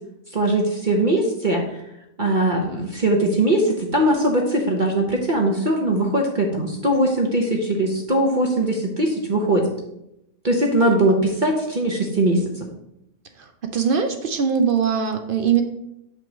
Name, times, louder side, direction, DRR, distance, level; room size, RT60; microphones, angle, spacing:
voice 1, 0.3-1.8 2.2-9.7 10.4-12.7, right 1 dB, 40° right, 1 dB, 0.8 m, -20 dB
voice 2, 13.4-15.6, right 7 dB, 70° right, 6 dB, 0.5 m, -21 dB
7.8 x 3.0 x 6.1 m, 0.83 s
omnidirectional pair, 1.5 m